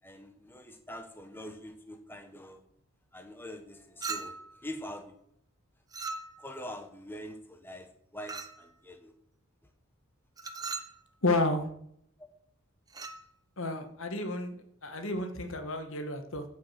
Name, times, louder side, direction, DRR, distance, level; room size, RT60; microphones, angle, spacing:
voice 1, 0.0-2.6 3.1-4.3 4.6-5.1 6.4-9.1, left 1 dB, 10° left, 5 dB, 1.1 m, -44 dB
Chink clink, 4.0-4.6 5.9-6.6 8.3-8.7 10.4-11.0 12.9-13.2, right 4 dB, 15° right, 0.8 m, -39 dB
voice 2, 11.2-11.7 13.6-14.6 14.8-16.4, left 2 dB, 65° left, 7 dB, 1.5 m, -31 dB
15.5 x 6.3 x 5.8 m, 0.71 s
head